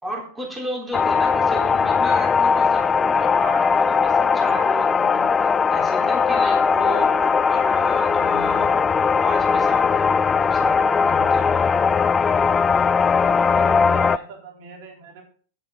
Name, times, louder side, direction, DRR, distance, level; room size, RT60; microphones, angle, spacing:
voice 1, 0.0-5.3 5.7-8.7 9.2-11.7, equal, 10° right, 0 dB, 3.6 m, -33 dB
sound 1, 0.9-14.2, left 5 dB, 20° left, 0.4 m, -19 dB
voice 2, 13.4-15.2, right 5 dB, 55° right, 1 dB, 3.9 m, -39 dB
10.5 x 10.5 x 4.0 m, 0.44 s
hypercardioid pair, 95°, 0 cm